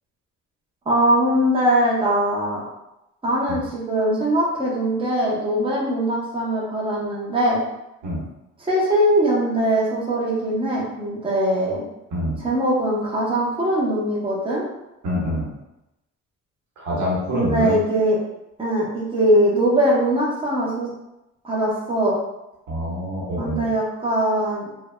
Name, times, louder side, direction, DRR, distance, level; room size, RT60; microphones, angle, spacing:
voice 1, 0.9-2.6 3.2-7.6 8.6-11.8 12.4-14.6 17.3-18.2 18.6-20.9 21.4-22.2 23.4-24.7, right 1 dB, 15° right, -4 dB, 0.8 m, -21 dB
voice 2, 12.1-12.4 15.0-15.5 16.8-17.8 22.7-23.7, equal, 80° right, -4 dB, 1.1 m, -26 dB
3.2 x 2.3 x 2.2 m, 0.92 s
cardioid pair, 90°, 30 cm